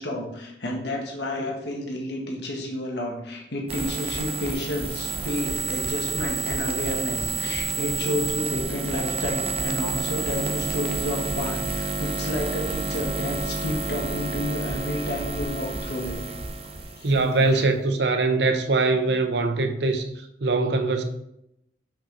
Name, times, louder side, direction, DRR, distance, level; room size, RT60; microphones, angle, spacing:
voice 1, 0.0-16.2 16.7-17.1 17.5-17.7, left 1 dB, 65° left, 1.5 m, -31 dB
sound 1, 3.7-17.5, right 4 dB, 35° right, 0.6 m, -29 dB
voice 2, 17.0-20.0 20.4-21.0, right 3 dB, 70° right, 0.7 m, -22 dB
5.8 x 5.4 x 4.0 m
head